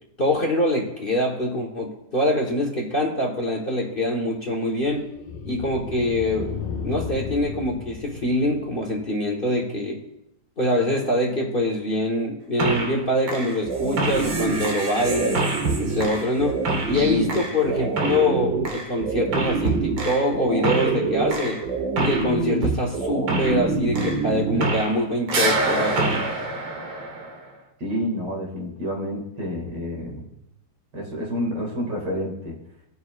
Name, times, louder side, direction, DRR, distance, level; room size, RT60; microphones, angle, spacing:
voice 1, 0.2-5.1 5.4-6.5 6.8-10.0 10.6-15.4 15.8-16.6 16.8-21.6 22.0-26.3, left 1 dB, 35° left, 0 dB, 1.2 m, -24 dB
sound 1, 3.6-9.0, left 6 dB, 85° left, 1.4 m, -35 dB
sound 2, 12.6-13.0 13.3-25.0 25.3-27.5, right 3 dB, 90° right, 2.0 m, -25 dB
voice 2, 17.0-17.4 27.8-30.3 30.9-32.6, equal, 70° right, -1 dB, 2.8 m, -29 dB
18.5 x 6.3 x 2.4 m, 0.83 s
omnidirectional pair, 2.0 m